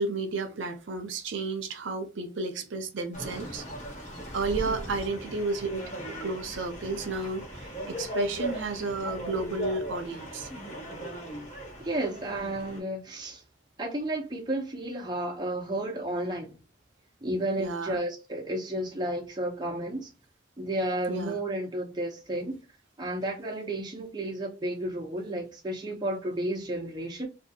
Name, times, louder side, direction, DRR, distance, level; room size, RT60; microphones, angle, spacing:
voice 1, 0.0-3.6 4.3-5.8 6.2-10.5 17.6-18.0 21.1-21.4, right 3 dB, 70° right, 0.5 m, -32 dB
sound 1, 3.1-12.8, equal, 35° left, 1.0 m, -38 dB
voice 2, 11.8-13.4 13.8-16.6 17.2-20.1 20.6-22.6 23.0-27.3, right 1 dB, 20° right, 0.6 m, -32 dB
2.6 x 2.3 x 2.7 m
head